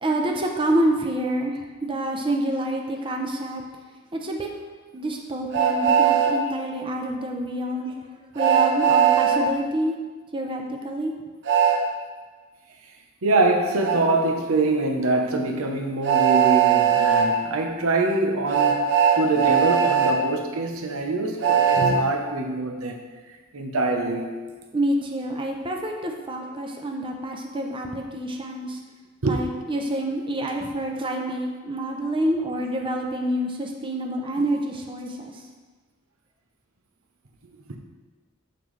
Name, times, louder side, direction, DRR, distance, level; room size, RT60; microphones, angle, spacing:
voice 1, 0.0-3.6 4.1-4.5 4.9-8.0 8.3-10.0 10.3-11.1 24.7-28.8 29.2-35.3, right 1 dB, 25° right, 2 dB, 0.6 m, -27 dB
Train, 5.5-6.3 8.4-9.4 11.5-11.8 13.8-14.0 16.0-17.3 18.5-20.1 21.4-21.9, right 8 dB, 60° right, 0.9 m, -19 dB
voice 2, 13.2-18.9 19.1-23.0 23.5-24.3 29.2-29.4 37.7-37.8, right 2 dB, 85° right, 3 dB, 0.8 m, -24 dB
7.0 x 5.8 x 3.2 m, 1.4 s
head